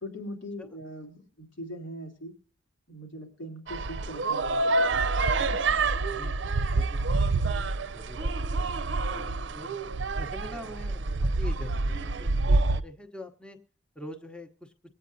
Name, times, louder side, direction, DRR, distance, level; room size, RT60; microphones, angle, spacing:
voice 1, 0.0-2.3 2.9-5.1, equal, 85° left, 0 dB, 2.6 m, -41 dB
sound 1, 3.7-12.8, right 3 dB, 70° right, 0.6 m, -27 dB
voice 2, 6.2-9.7 10.2-13.6 14.0-14.7, left 1 dB, 5° left, 4 dB, 0.8 m, -45 dB
24.0 x 8.5 x 2.6 m, 0.38 s
head